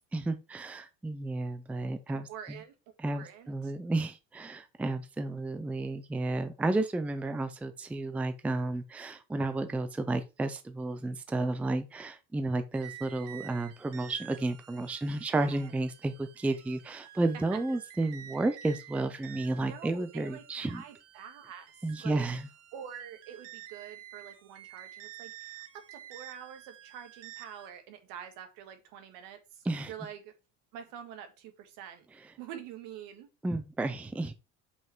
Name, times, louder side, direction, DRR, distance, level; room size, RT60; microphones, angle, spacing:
voice 1, 0.1-2.6 3.0-20.8 21.8-22.5 29.7-29.9 33.4-34.3, right 2 dB, 5° right, 0.4 m, -32 dB
voice 2, 2.1-2.8 3.1-3.7 15.3-15.7 17.7-17.8 19.6-21.7 22.0-22.3 22.7-30.3 30.7-32.1 32.4-33.3, right 9 dB, 75° right, 1.8 m, -46 dB
sound 1, 12.7-27.7, right 12 dB, 50° right, 1.1 m, -50 dB
5.6 x 5.5 x 4.5 m
cardioid pair, 160°, 33 cm